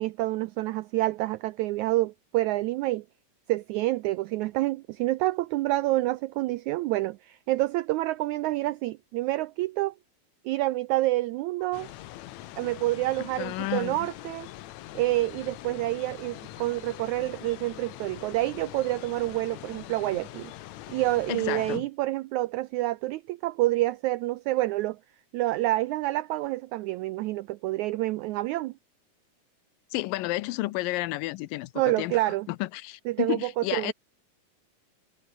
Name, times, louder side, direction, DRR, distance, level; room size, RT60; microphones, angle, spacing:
voice 1, 0.0-3.0 3.5-9.9 10.4-11.9 12.6-14.5 14.9-20.5 20.9-25.0 25.3-28.7 31.8-32.5 33.1-33.9, right 17 dB, 90° right, 1.7 m, -28 dB
sound 1, 11.7-21.8, left 15 dB, 70° left, 1.9 m, -43 dB
voice 2, 13.2-14.1 21.3-21.9 29.9-33.9, left 18 dB, 90° left, 2.4 m, -32 dB
omnidirectional pair, 4.0 m